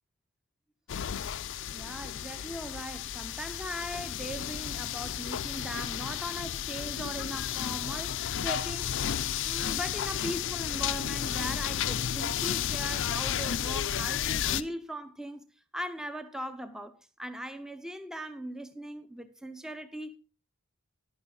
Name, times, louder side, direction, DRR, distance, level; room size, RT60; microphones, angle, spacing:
sound 1, 0.9-14.6, left 9 dB, 55° left, 0.5 m, -32 dB
voice 1, 1.7-15.5 15.7-16.9 17.2-20.2, equal, 5° right, 0.5 m, -39 dB
11.0 x 9.8 x 3.8 m
head